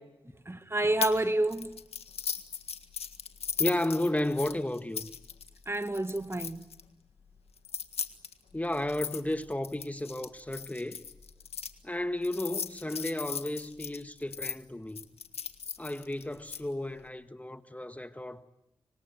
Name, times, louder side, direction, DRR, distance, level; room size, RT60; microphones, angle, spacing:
voice 1, 0.4-1.7 5.7-6.6, right 2 dB, 25° right, 1.6 m, -29 dB
sound 1, 1.0-1.2 1.5-6.8 7.6-11.7 12.2-14.5 15.0-16.6, left 6 dB, 80° left, 1.8 m, -37 dB
voice 2, 3.6-5.1 8.5-11.0 11.8-15.0 15.8-18.5, left 1 dB, 15° left, 1.5 m, -33 dB
25.5 x 25.0 x 9.1 m
cardioid pair, 45°, 10 cm